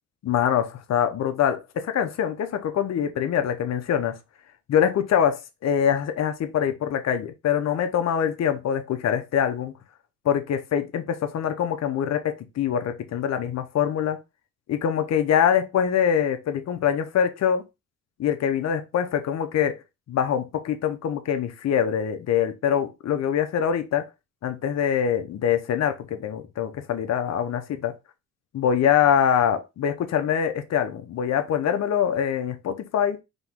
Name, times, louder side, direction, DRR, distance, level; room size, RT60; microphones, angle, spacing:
voice 1, 0.2-4.2 4.7-9.7 10.2-14.2 14.7-17.6 18.2-19.8 20.1-24.1 24.4-28.0 28.5-33.2, left 8 dB, 60° left, 0.8 m, -24 dB
3.9 x 3.0 x 3.6 m
cardioid pair, 90°, 30 cm